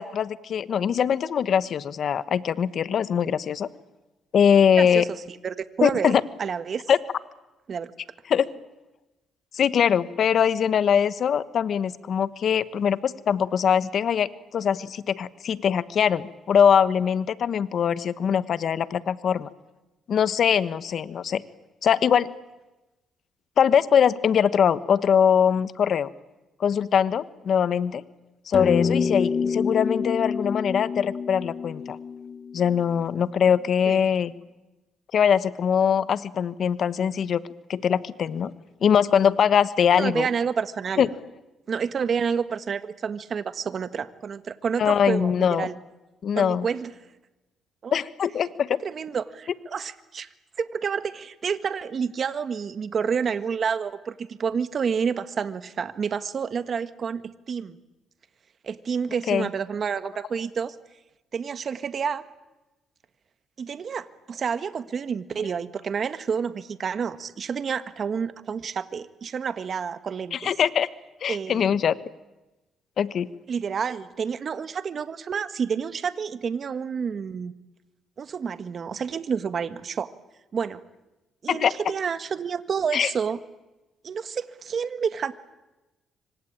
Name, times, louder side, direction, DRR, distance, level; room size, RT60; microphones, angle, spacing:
voice 1, 0.0-3.7 4.3-5.1 5.8-6.2 6.9-7.0 8.3-8.5 9.5-19.5 20.1-21.4 21.8-22.3 23.6-26.1 26.6-28.0 28.5-32.0 32.5-34.3 35.1-37.4 37.7-38.5 38.8-40.3 41.0-41.1 44.8-45.7 46.2-46.7 47.9-48.8 59.3-59.5 70.3-70.9 71.2-71.9 73.0-73.3 81.5-81.7 82.9-83.1, left 8 dB, 60° left, 14 dB, 1.3 m, -22 dB
voice 2, 4.8-6.8 7.7-7.9 33.9-34.1 40.0-41.1 41.7-45.8 46.3-46.9 47.8-48.0 48.8-50.3 50.6-57.8 58.6-60.7 61.3-62.2 63.6-70.5 71.3-71.7 73.5-77.5 78.2-80.1 80.5-80.8 81.4-83.4 84.0-85.3, right 6 dB, 50° right, 12 dB, 1.6 m, -29 dB
sound 1, 28.5-33.2, left 5 dB, 40° left, 1.4 m, -27 dB
26.5 x 25.0 x 8.9 m, 1.0 s
cardioid pair, 90°, 0 cm